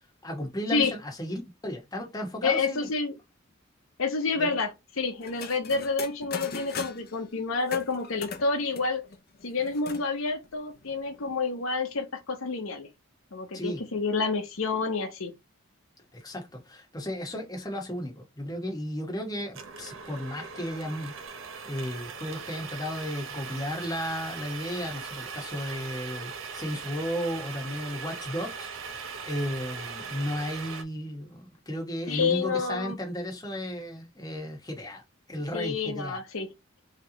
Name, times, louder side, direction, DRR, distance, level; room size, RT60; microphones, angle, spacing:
voice 1, 0.2-2.9 4.3-4.5 13.5-13.8 16.1-21.2 21.6-28.7 29.2-35.0 35.3-36.2, equal, 20° left, 1.1 m, -34 dB
voice 2, 2.4-3.1 4.0-9.0 9.4-12.9 13.3-15.3 32.1-33.0 35.5-36.5, left 4 dB, 80° left, 0.9 m, -29 dB
sound 1, 5.2-7.2 7.6-10.1 10.4-10.5 10.7-11.4, left 5 dB, 50° left, 0.7 m, -40 dB
sound 2, 19.5-30.8, right 5 dB, 70° right, 0.8 m, -40 dB
3.4 x 2.9 x 3.8 m
head